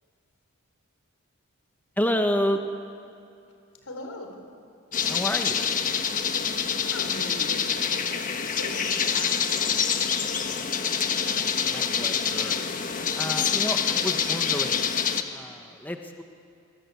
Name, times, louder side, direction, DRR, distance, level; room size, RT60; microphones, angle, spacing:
voice 1, 2.0-2.6 5.0-5.6 11.2-12.6 13.2-14.9 15.3-16.2, equal, 10° left, 4 dB, 1.0 m, -30 dB
voice 2, 3.8-4.3 6.9-8.3 8.6-9.6, left 1 dB, 80° left, 3 dB, 4.3 m, -39 dB
sound 1, 4.9-15.2, left 7 dB, 40° left, 1.3 m, -26 dB
27.0 x 20.5 x 8.4 m, 2.6 s
head